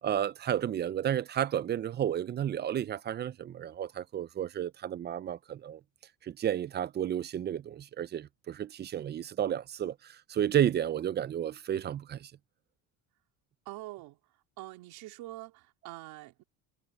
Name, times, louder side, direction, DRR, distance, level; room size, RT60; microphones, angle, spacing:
voice 1, 0.0-5.8 6.2-12.3, right 10 dB, 30° right, 0.4 m, -32 dB
voice 2, 13.6-14.2 14.6-16.4, right 18 dB, 75° right, 3.0 m, -45 dB
cardioid pair, 130°, 37 cm